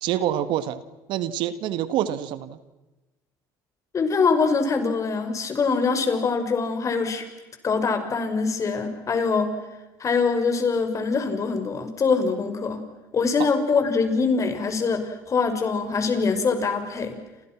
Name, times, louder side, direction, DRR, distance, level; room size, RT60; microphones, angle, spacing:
voice 1, 0.0-0.8 1.1-2.6, right 11 dB, 70° right, 13 dB, 2.0 m, -26 dB
voice 2, 3.9-7.3 7.6-9.6 10.0-12.8 13.1-17.2, left 4 dB, 40° left, 7 dB, 5.7 m, -23 dB
30.0 x 27.5 x 6.2 m, 1.1 s
supercardioid pair, 85°, 9 cm